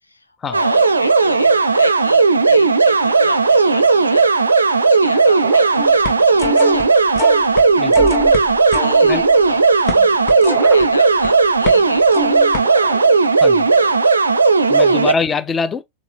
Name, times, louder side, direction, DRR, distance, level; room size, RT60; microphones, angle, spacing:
voice 1, 0.5-4.3 4.8-6.9 8.8-9.6 10.4-12.4 13.7-13.9 14.7-15.1, left 2 dB, 80° left, 0.5 m, -31 dB
sound 1, 0.5-15.1, right 4 dB, 75° right, 0.4 m, -14 dB
sound 2, 5.4-5.9 7.9-8.6 10.5-11.1 12.6-13.3, right 8 dB, 35° right, 0.6 m, -33 dB
sound 3, 5.8-6.8 7.2-7.6 7.9-11.3 11.6-11.8 12.1-12.6, left 4 dB, 40° left, 1.2 m, -26 dB
voice 2, 7.8-8.1 9.0-9.3 13.4-13.7 14.7-15.8, left 5 dB, 20° left, 0.5 m, -23 dB
4.1 x 2.4 x 4.2 m
figure-of-eight pair, 90°, 0 cm